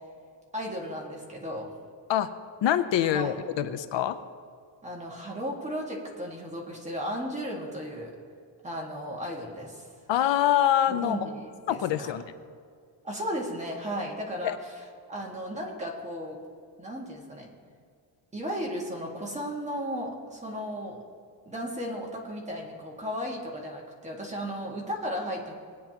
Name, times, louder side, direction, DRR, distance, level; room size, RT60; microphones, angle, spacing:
voice 1, 0.5-1.7 3.1-3.3 4.8-8.1 8.6-9.8 10.9-12.2 13.0-14.5 15.1-16.4 16.8-17.5 18.3-21.0 21.5-25.5, equal, 15° right, -2 dB, 1.8 m, -35 dB
voice 2, 2.6-4.2 10.1-11.2 11.7-12.2 14.4-14.6, left 11 dB, 75° left, 11 dB, 0.6 m, -25 dB
19.0 x 9.3 x 2.9 m, 2.2 s
wide cardioid pair, 150°, 44 cm